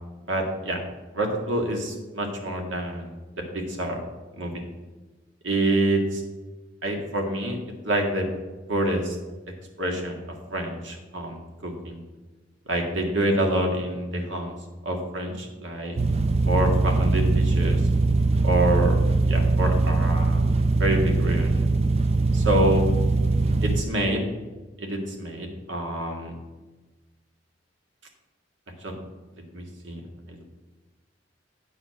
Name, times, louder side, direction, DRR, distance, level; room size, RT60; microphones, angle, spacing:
voice 1, 0.3-0.8 1.1-3.1 3.5-4.0 4.4-4.6 5.4-6.2 6.8-7.6 7.8-8.2 8.7-9.2 9.8-10.2 10.5-11.4 11.6-12.0 12.7-14.6 14.8-16.0 16.5-17.8 18.4-19.0 19.3-20.5 20.8-21.7 22.3-22.9 23.6-24.2 24.8-26.4 28.8-28.9 29.5-30.0 30.3-30.4, right 1 dB, 85° right, 2 dB, 1.9 m, -26 dB
sound 1, 16.0-23.8, right 3 dB, 35° right, 0.4 m, -21 dB
8.9 x 5.7 x 5.8 m, 1.2 s
head